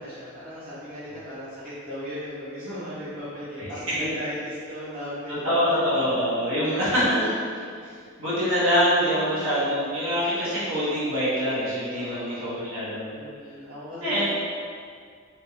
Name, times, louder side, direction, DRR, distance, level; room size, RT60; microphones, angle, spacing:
voice 1, 0.0-5.7 5.9-6.1 6.6-7.3 7.7-7.8 9.0-9.5 10.3-10.6 11.9-12.5 13.1-14.3, equal, 40° right, -12 dB, 0.9 m, -37 dB
voice 2, 5.4-7.2 8.2-13.2 14.0-14.3, equal, 75° right, -10 dB, 1.2 m, -24 dB
3.2 x 3.0 x 2.9 m, 2.1 s
head